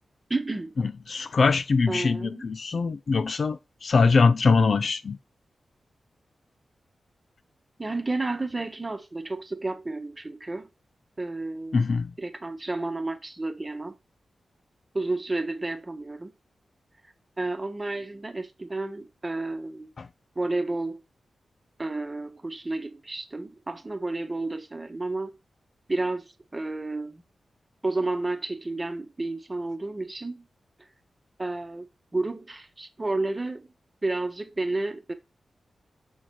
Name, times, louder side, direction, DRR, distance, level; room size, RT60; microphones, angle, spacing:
voice 1, 0.3-0.7 1.9-2.5 7.8-10.7 11.2-11.8 12.2-14.0 14.9-16.3 17.4-19.9 20.4-21.0 21.8-25.3 25.9-27.2 27.8-30.5 31.4-33.7 34.0-35.1, right 2 dB, 25° right, 1.1 m, -31 dB
voice 2, 1.1-5.2 11.7-12.1, left 4 dB, 60° left, 0.5 m, -22 dB
6.3 x 4.2 x 4.6 m
cardioid pair, 80°, 0 cm